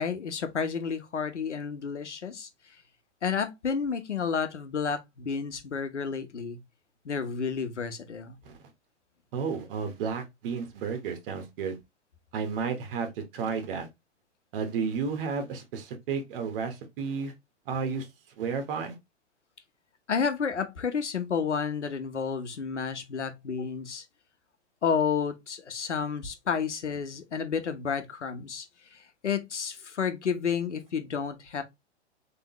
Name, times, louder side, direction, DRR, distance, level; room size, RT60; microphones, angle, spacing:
voice 1, 0.0-2.5 3.2-6.6 7.0-8.4 20.1-24.0 24.8-28.7 28.9-31.6, left 6 dB, 90° left, 1.1 m, -31 dB
voice 2, 9.3-11.8 12.3-13.9 14.5-17.3 17.7-18.1 18.4-19.0, right 5 dB, 55° right, 1.4 m, -32 dB
3.8 x 3.3 x 3.0 m
hypercardioid pair, 115°, 34 cm